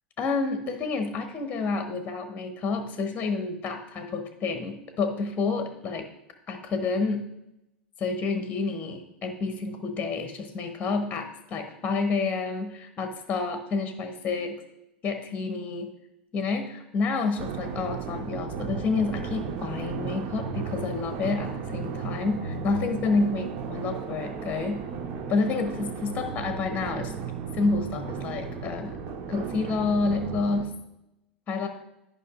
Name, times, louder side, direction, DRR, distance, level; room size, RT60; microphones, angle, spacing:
voice 1, 0.2-6.1 6.5-7.3 8.0-14.6 15.0-15.9 16.3-24.8 25.3-27.1 27.5-29.0 29.3-30.7 31.5-31.7, left 4 dB, 30° left, 6 dB, 0.9 m, -29 dB
sound 1, 17.4-30.6, right 6 dB, 45° right, 0.7 m, -35 dB
11.0 x 5.4 x 2.4 m, 0.89 s
figure-of-eight pair, 85°, 6 cm